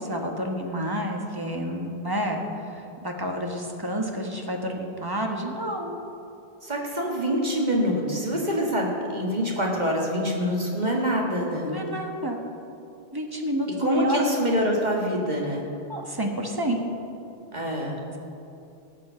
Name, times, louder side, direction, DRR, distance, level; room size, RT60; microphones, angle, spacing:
voice 1, 0.0-2.4 2.7-6.0 11.6-12.4 13.1-14.2 15.9-16.8, equal, 20° right, 2 dB, 1.3 m, -29 dB
voice 2, 6.6-11.7 13.8-15.6 17.5-18.0, equal, 45° right, -2 dB, 2.0 m, -25 dB
18.0 x 7.5 x 5.7 m, 2.7 s
omnidirectional pair, 1.1 m